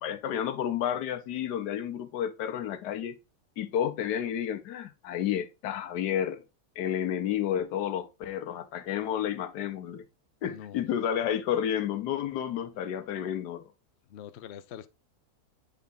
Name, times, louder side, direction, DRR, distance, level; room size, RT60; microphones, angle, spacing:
voice 1, 0.0-3.1 3.6-6.4 6.8-10.1 10.4-13.6, left 10 dB, 90° left, 1.4 m, -31 dB
voice 2, 10.4-10.8 14.1-14.9, left 9 dB, 65° left, 0.6 m, -44 dB
8.5 x 3.5 x 3.9 m
omnidirectional pair, 1.7 m